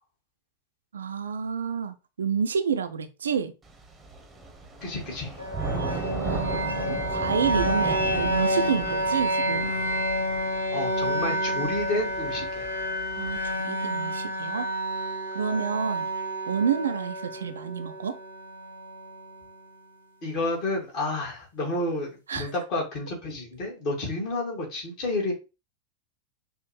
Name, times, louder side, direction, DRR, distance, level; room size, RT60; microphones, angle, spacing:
voice 1, 0.9-3.5 5.1-5.2 5.7-9.7 13.1-14.7 15.3-16.1 16.5-18.2 22.3-22.5, right 7 dB, 70° right, 10 dB, 0.5 m, -29 dB
Thunder / Rain, 3.7-13.6, right 3 dB, 10° right, 1.0 m, -37 dB
voice 2, 4.8-5.3 10.7-12.7 20.2-25.3, left 2 dB, 40° left, -2 dB, 2.4 m, -30 dB
sound 1, 5.4-19.3, equal, 85° left, 0.9 m, -29 dB
6.1 x 2.6 x 3.2 m, 0.29 s
figure-of-eight pair, 90°, 0 cm